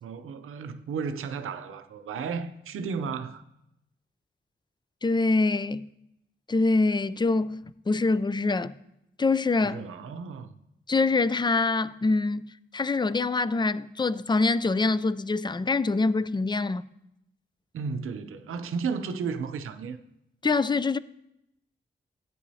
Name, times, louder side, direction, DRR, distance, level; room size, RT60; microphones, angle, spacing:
voice 1, 0.0-3.4 9.6-10.6 17.7-20.0, right 5 dB, 90° right, 0.6 m, -33 dB
voice 2, 5.0-5.9 6.5-8.8 9.2-9.8 10.9-12.4 12.7-16.8 20.4-21.0, left 3 dB, 20° left, 0.4 m, -25 dB
13.0 x 9.3 x 2.8 m
cardioid pair, 45°, 21 cm